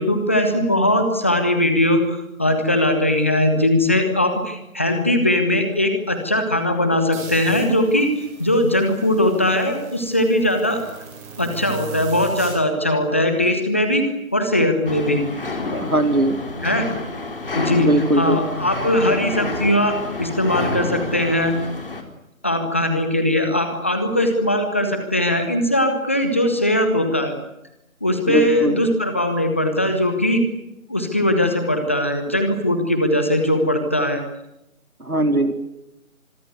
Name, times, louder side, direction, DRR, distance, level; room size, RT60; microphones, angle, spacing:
voice 1, 0.0-10.8 11.4-14.1 14.3-15.2 16.6-16.9 17.6-17.9 18.2-21.5 22.4-27.3 28.0-30.4 30.9-34.2, left 1 dB, 10° left, 7 dB, 1.2 m, -20 dB
sound 1, 7.1-12.6, right 7 dB, 10° right, 4.5 m, -39 dB
sound 2, 14.9-22.0, left 2 dB, 40° left, 4.3 m, -29 dB
voice 2, 15.7-16.4 17.8-18.4 28.3-28.8 35.0-35.5, right 1 dB, 80° right, 8 dB, 3.9 m, -20 dB
25.5 x 22.0 x 8.1 m, 0.86 s
figure-of-eight pair, 160°, 43 cm